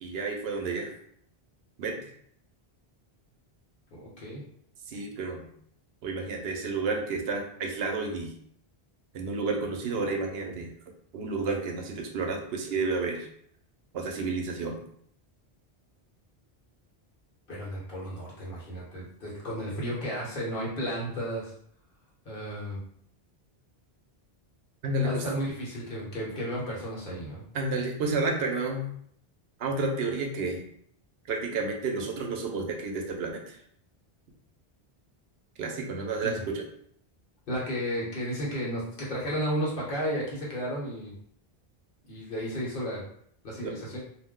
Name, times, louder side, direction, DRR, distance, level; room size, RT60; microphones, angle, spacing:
voice 1, 0.0-0.9 1.8-2.1 4.9-5.5 6.0-8.3 9.1-10.7 11.1-13.3 13.9-14.8 24.8-25.2 27.5-28.9 29.6-30.6 31.3-33.6 35.6-36.6 43.6-43.8, right 3 dB, 75° right, 2 dB, 0.8 m, -31 dB
voice 2, 3.9-4.4 17.5-21.5 22.2-22.8 25.0-27.4 36.2-36.4 37.5-41.1 42.1-43.0 43.4-44.0, equal, 60° left, -4 dB, 1.1 m, -33 dB
2.4 x 2.1 x 3.5 m, 0.66 s
omnidirectional pair, 1.1 m